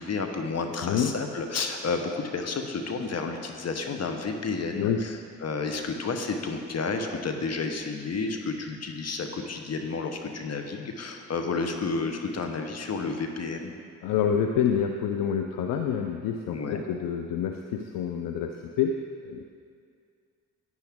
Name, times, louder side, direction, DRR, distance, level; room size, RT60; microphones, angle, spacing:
voice 1, 0.0-5.2 5.4-13.7 16.5-16.8, left 4 dB, 50° left, 5 dB, 1.0 m, -31 dB
voice 2, 0.8-1.1 4.8-5.0 14.0-19.0 19.2-19.4, left 8 dB, 85° left, 5 dB, 0.6 m, -27 dB
10.5 x 9.6 x 3.6 m, 2.2 s
supercardioid pair, 60°, 33 cm